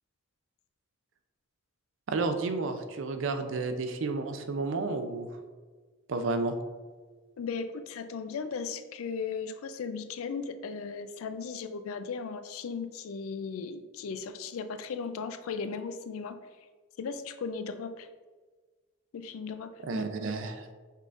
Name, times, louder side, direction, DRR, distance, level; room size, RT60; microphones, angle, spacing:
voice 1, 2.1-5.3 6.1-6.5 19.8-20.7, right 3 dB, 65° right, 7 dB, 0.5 m, -31 dB
voice 2, 7.4-16.4 17.0-18.1 19.1-19.7, left 5 dB, 85° left, 9 dB, 0.4 m, -36 dB
5.4 x 3.7 x 2.4 m, 1.4 s
head